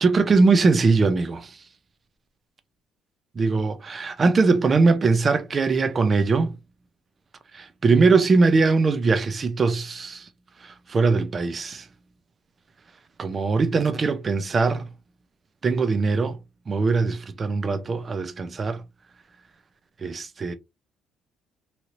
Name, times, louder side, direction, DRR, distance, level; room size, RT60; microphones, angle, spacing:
voice 1, 0.0-1.6 3.4-6.5 7.5-10.3 10.6-11.9 13.2-14.9 15.6-16.4 16.7-18.8 20.0-20.5, right 4 dB, 25° right, 0.4 m, -21 dB
3.0 x 2.8 x 2.5 m
cardioid pair, 175°, 0 cm